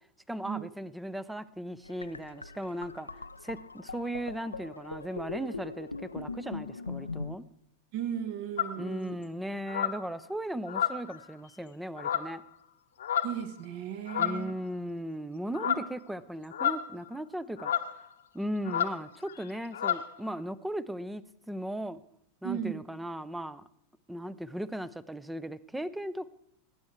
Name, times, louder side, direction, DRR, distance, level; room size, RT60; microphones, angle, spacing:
voice 1, 0.3-7.5 8.8-12.4 14.2-18.1 18.3-22.0 22.4-23.6 24.1-26.3, equal, 5° right, 18 dB, 0.6 m, -37 dB
sound 1, 1.8-7.4, left 4 dB, 80° left, 0.5 m, -41 dB
voice 2, 7.9-9.2 13.2-14.5 15.6-15.8 18.6-18.7 22.4-22.8, right 9 dB, 50° right, 12 dB, 1.3 m, -36 dB
sound 2, 8.6-8.8 9.7-10.1 10.7-11.3 12.0-12.4 13.0-13.4 14.1-14.5 15.5-15.9 16.5-17.1 17.6-17.9 18.6-19.0 19.3-19.5 19.7-20.1, left 9 dB, 65° left, 0.9 m, -30 dB
18.0 x 9.5 x 4.5 m, 0.76 s
figure-of-eight pair, 90°, 0 cm